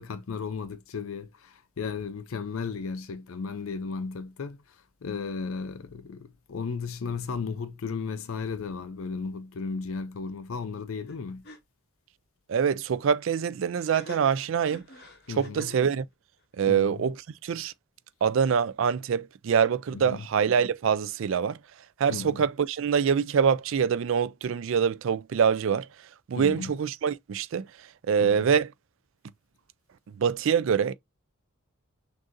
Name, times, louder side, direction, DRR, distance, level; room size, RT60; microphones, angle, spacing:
voice 1, 0.0-4.6 5.0-11.4 15.3-15.7 16.7-16.9 19.9-20.3 22.1-22.4 26.4-26.7 28.2-28.4, left 5 dB, 70° left, 0.5 m, -35 dB
sound 1, 11.1-11.2 11.4-11.6 13.8-15.9, left 2 dB, 50° left, 0.9 m, -46 dB
voice 2, 12.5-14.9 15.4-16.1 16.6-17.7 18.2-21.6 22.0-25.9 26.3-27.7 28.1-28.7 30.1-30.9, right 7 dB, 60° right, 0.3 m, -25 dB
6.3 x 2.6 x 2.6 m
head